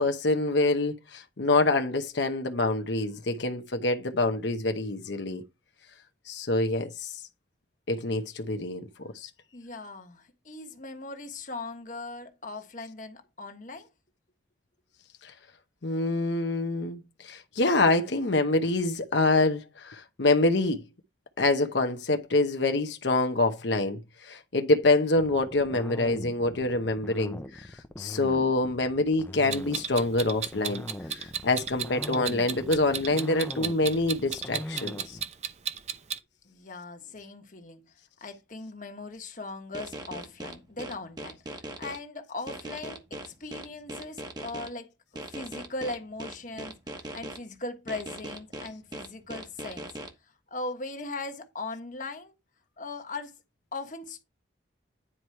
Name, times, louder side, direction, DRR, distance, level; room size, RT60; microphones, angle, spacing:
voice 1, 0.0-5.4 6.3-7.2 7.9-8.9 9.1-9.3 15.2-15.3 15.8-20.8 21.4-30.8 31.1-35.2, left 2 dB, 75° left, 0.9 m, -26 dB
voice 2, 9.5-13.9 36.4-37.8 38.2-44.9 45.2-46.8 47.1-49.9 50.5-52.3 52.8-53.4 53.7-54.2, left 2 dB, 45° left, 1.4 m, -39 dB
sound 1, 25.2-35.3, left 1 dB, 10° left, 0.6 m, -40 dB
Clock, 29.5-36.2, right 8 dB, 40° right, 0.7 m, -34 dB
sound 2, 39.7-42.0 42.5-44.7 45.2-47.4 47.9-50.1, right 1 dB, 20° right, 1.2 m, -39 dB
10.0 x 4.7 x 4.4 m
head